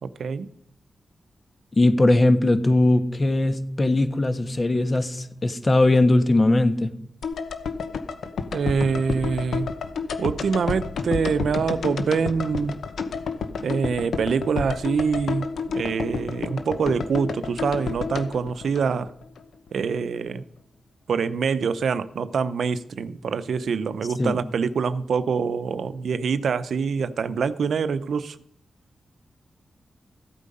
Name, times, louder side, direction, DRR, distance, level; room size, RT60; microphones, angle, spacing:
voice 1, 0.0-0.5 8.5-9.7 10.2-12.8 13.6-19.1 19.7-20.4 21.1-28.4, right 5 dB, 80° right, 14 dB, 0.6 m, -25 dB
voice 2, 1.7-6.9 24.2-24.4, left 2 dB, 35° left, 9 dB, 1.4 m, -20 dB
sound 1, 7.2-19.4 19.7-19.8, left 5 dB, 85° left, 1.0 m, -30 dB
15.0 x 8.3 x 5.4 m, 0.70 s
cardioid pair, 60°, 0 cm